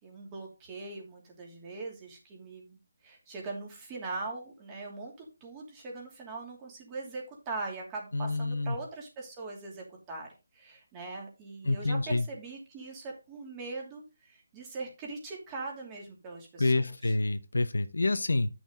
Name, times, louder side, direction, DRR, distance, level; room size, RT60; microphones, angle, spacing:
voice 1, 0.0-2.8 3.0-17.1, right 3 dB, 15° right, 2.8 m, -41 dB
voice 2, 8.1-8.8 11.6-12.3 16.6-18.5, left 2 dB, 85° left, 1.0 m, -28 dB
10.5 x 6.3 x 3.8 m
hypercardioid pair, 165°, 0 cm